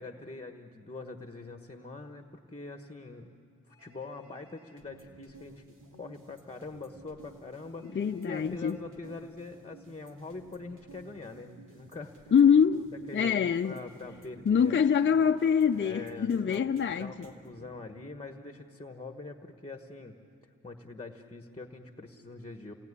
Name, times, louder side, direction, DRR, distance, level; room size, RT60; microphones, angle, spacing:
voice 1, 0.0-3.3 3.7-5.6 6.0-12.3 13.1-14.8 15.0-15.2 15.7-20.2 20.4-22.7, left 3 dB, 15° left, 1.2 m, -44 dB
Telephone, 3.7-4.8 7.7-8.8, right 1 dB, 50° right, 6.0 m, -63 dB
sound 1, 4.8-17.7, right 3 dB, 75° right, 2.6 m, -54 dB
voice 2, 7.9-8.8 12.3-13.8 14.5-17.1, left 7 dB, 35° left, 0.6 m, -24 dB
28.5 x 19.0 x 9.7 m
wide cardioid pair, 95°, 32 cm